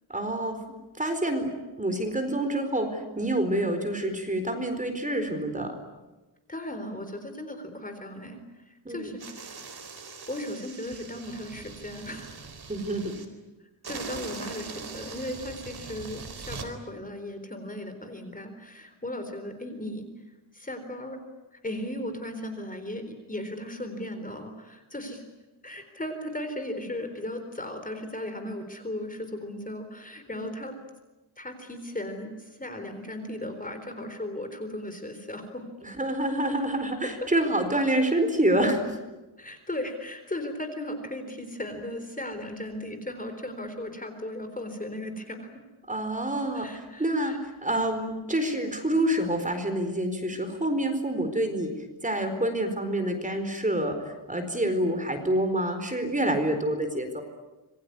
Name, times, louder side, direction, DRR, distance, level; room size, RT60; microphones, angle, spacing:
voice 1, 0.1-0.6 1.0-1.5 1.8-5.7 8.8-9.1 12.7-13.1 30.3-30.5 35.8-39.0 45.9-57.2, right 1 dB, 15° right, 7 dB, 4.4 m, -27 dB
voice 2, 6.5-9.5 10.3-12.3 13.9-20.1 20.5-21.2 21.6-25.2 25.6-30.8 31.4-35.7 37.2-37.3 39.4-45.6 46.5-47.4, left 1 dB, 15° left, 7 dB, 3.9 m, -36 dB
sound 1, 9.2-13.2 13.8-16.7, right 5 dB, 50° right, 4.3 m, -41 dB
27.5 x 22.5 x 9.7 m, 1.1 s
wide cardioid pair, 130°, 49 cm